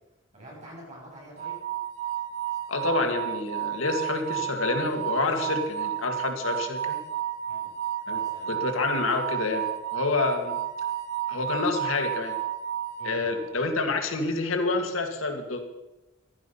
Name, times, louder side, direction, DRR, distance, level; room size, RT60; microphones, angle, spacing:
voice 1, 0.3-1.6 7.5-7.7 8.1-8.6 13.0-13.5, right 1 dB, 35° right, -3 dB, 7.2 m, -45 dB
sound 1, 1.4-13.6, right 10 dB, 70° right, 1.1 m, -32 dB
voice 2, 2.7-7.0 8.1-8.2 8.5-10.6 11.3-12.4 13.0-15.6, left 3 dB, 85° left, 4 dB, 2.2 m, -28 dB
14.5 x 13.0 x 5.6 m, 0.99 s
head